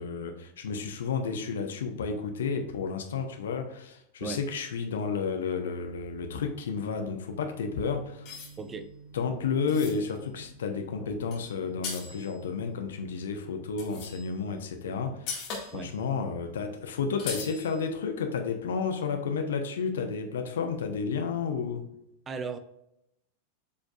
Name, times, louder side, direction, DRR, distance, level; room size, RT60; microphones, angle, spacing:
voice 1, 0.0-8.3 9.1-15.3 15.7-21.9, left 5 dB, 60° left, 1.0 m, -31 dB
sound 1, 5.7-7.8 8.3-12.7 13.3-14.5 14.7-14.8 15.1-16.1 16.3-16.4 16.6-16.7 17.2-17.8, left 5 dB, 40° left, 2.0 m, -41 dB
sound 2, 7.4-12.6, right 4 dB, 20° left, 1.1 m, -52 dB
voice 2, 8.6-8.9 15.7-15.9 22.3-22.6, right 5 dB, 20° right, 0.7 m, -36 dB
8.3 x 5.1 x 2.5 m
figure-of-eight pair, 90°, 0 cm